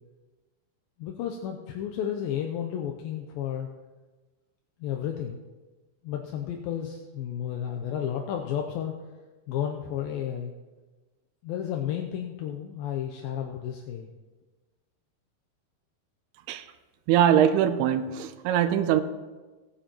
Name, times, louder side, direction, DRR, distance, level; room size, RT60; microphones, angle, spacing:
voice 1, 1.0-3.7 4.8-5.4 6.0-8.9 9.5-10.5 11.4-14.1, left 9 dB, 80° left, 2.2 m, -32 dB
voice 2, 17.1-19.0, right 10 dB, 80° right, 2.5 m, -22 dB
18.0 x 9.8 x 3.0 m
omnidirectional pair, 4.7 m